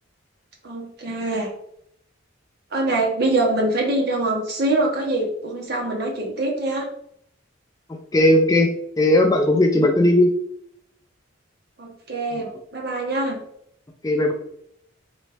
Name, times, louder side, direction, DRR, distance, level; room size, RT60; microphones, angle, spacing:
voice 1, 0.6-1.5 2.7-6.9 11.8-12.5 12.7-13.4, right 2 dB, 50° right, 0 dB, 1.0 m, -24 dB
voice 2, 8.1-10.3 14.0-14.3, left 1 dB, 15° left, 3 dB, 0.3 m, -17 dB
3.9 x 3.1 x 3.3 m, 0.71 s
head